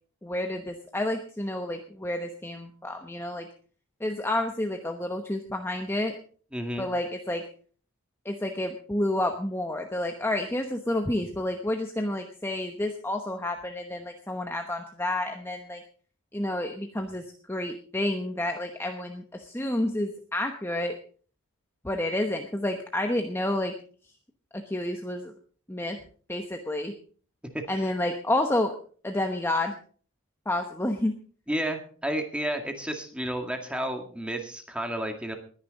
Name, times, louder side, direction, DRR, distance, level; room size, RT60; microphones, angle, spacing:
voice 1, 0.2-3.5 4.0-6.1 6.8-7.5 8.2-15.8 16.3-21.0 21.8-23.7 24.5-25.3 25.7-26.0 26.3-26.9 27.7-28.8 29.0-29.7 30.5-31.2, left 1 dB, 10° left, 4 dB, 1.0 m, -30 dB
voice 2, 6.5-6.9 27.7-27.9 31.5-35.4, right 1 dB, 5° right, 4 dB, 2.0 m, -31 dB
20.5 x 10.0 x 4.0 m, 0.44 s
head